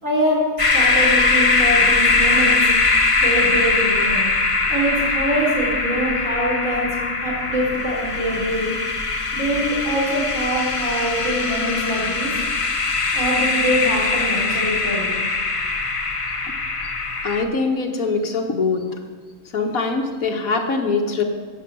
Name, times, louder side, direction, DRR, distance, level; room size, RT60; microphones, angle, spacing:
voice 1, 0.0-2.7 3.2-4.3 4.7-6.9 7.2-8.7 9.3-12.3 13.1-15.2, equal, 60° right, -4 dB, 4.4 m, -24 dB
sound 1, 0.6-17.4, left 3 dB, 25° left, 0.9 m, -21 dB
voice 2, 17.2-18.9 19.5-21.2, left 4 dB, 75° left, 3 dB, 2.0 m, -22 dB
14.5 x 8.2 x 7.8 m, 1.5 s
omnidirectional pair, 1.5 m